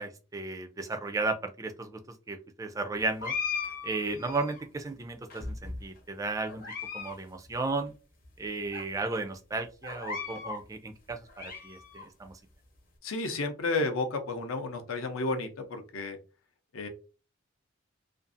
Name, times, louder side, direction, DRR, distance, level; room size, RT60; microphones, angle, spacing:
voice 1, 0.0-2.0 2.3-3.3 3.8-6.6 6.9-7.9 8.4-12.4, right 3 dB, 15° right, 6 dB, 0.3 m, -34 dB
sound 1, 3.2-4.6 5.3-6.0 6.5-7.2 7.4-7.5 8.2-8.3 8.7-8.8 9.8-10.6 11.1-12.1, left 5 dB, 45° left, 0.7 m, -37 dB
voice 2, 13.0-16.2 16.7-16.9, left 2 dB, 80° left, 6 dB, 0.6 m, -32 dB
2.6 x 2.3 x 2.5 m, 0.33 s
head